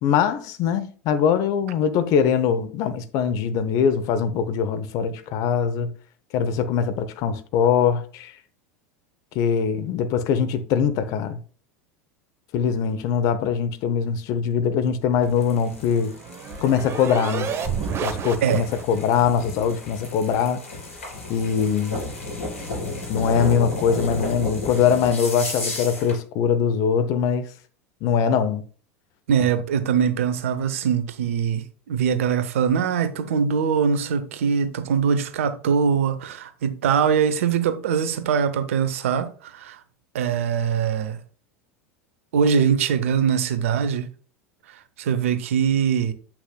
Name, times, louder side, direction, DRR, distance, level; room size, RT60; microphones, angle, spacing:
voice 1, 0.0-5.9 6.3-8.3 9.3-11.4 12.5-16.2 16.6-17.5 18.0-20.6 21.3-22.0 23.1-27.5 28.0-28.6, left 7 dB, 50° left, 0.8 m, -22 dB
sound 1, 15.2-26.2, left 2 dB, 75° left, 3.4 m, -33 dB
sound 2, 15.4-19.0, right 7 dB, 35° right, 1.0 m, -31 dB
voice 2, 29.3-39.8 40.1-41.2 42.3-44.1 45.0-46.1, right 7 dB, 70° right, 0.8 m, -22 dB
8.0 x 5.8 x 2.3 m
hypercardioid pair, 80°, 7 cm